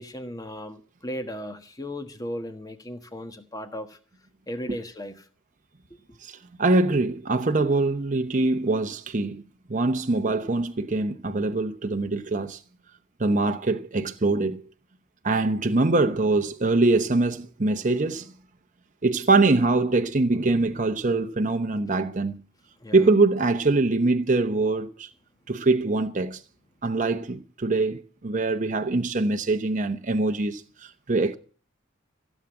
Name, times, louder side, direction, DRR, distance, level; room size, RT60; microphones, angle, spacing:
voice 1, 0.0-4.0 4.5-5.3 6.1-6.2 22.8-23.1, equal, 20° left, 1.3 m, -36 dB
voice 2, 6.2-9.4 9.7-12.6 13.2-14.6 15.2-18.3 19.0-22.4 22.9-25.1 25.5-26.4 26.8-31.3, right 3 dB, 40° right, 0.8 m, -23 dB
16.0 x 7.3 x 8.7 m
head